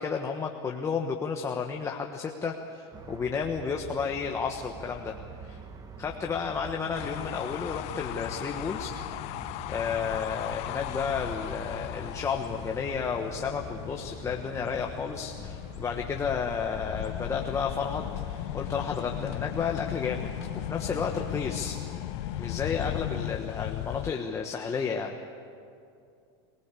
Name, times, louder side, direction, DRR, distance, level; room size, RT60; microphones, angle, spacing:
voice 1, 0.0-5.2 5.4-5.6 6.0-8.9 9.7-20.3 20.7-21.8 22.4-25.2, left 6 dB, 20° left, 2 dB, 1.4 m, -32 dB
sound 1, 2.9-21.9, right 5 dB, 25° right, 1.5 m, -46 dB
sound 2, 6.9-24.1, left 19 dB, 50° left, 0.5 m, -38 dB
sound 3, 17.0-23.3, left 10 dB, 70° left, 1.6 m, -38 dB
24.5 x 19.0 x 8.5 m, 2.4 s
supercardioid pair, 125°, 14 cm